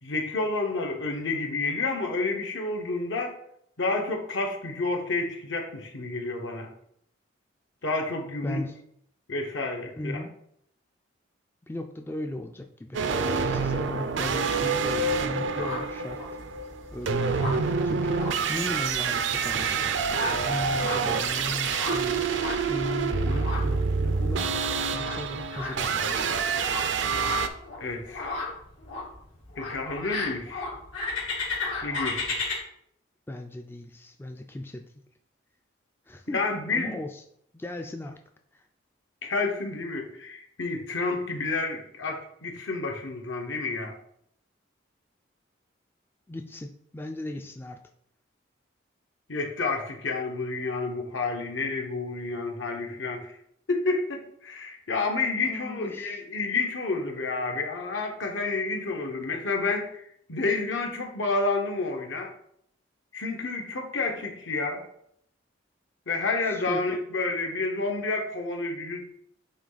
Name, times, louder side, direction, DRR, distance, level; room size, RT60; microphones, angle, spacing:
voice 1, 0.0-3.3 3.8-6.7 7.8-8.6 9.3-10.2 27.8-28.4 29.6-30.7 31.8-32.3 36.3-37.0 39.2-43.9 49.3-53.3 53.7-62.3 63.1-64.8 66.1-69.0, left 3 dB, 75° left, 2 dB, 1.1 m, -30 dB
voice 2, 8.4-8.7 10.0-10.3 11.7-16.2 16.9-26.5 33.3-34.9 36.1-36.4 36.7-37.2 37.5-38.2 38.5-38.7 46.3-47.8 55.4-56.2 66.4-66.8, left 1 dB, 10° left, 4 dB, 0.3 m, -37 dB
sound 1, 12.9-27.5, right 5 dB, 70° right, 0.5 m, -27 dB
sound 2, 14.5-32.5, left 3 dB, 90° left, 2.4 m, -36 dB
8.2 x 3.1 x 4.0 m, 0.71 s
head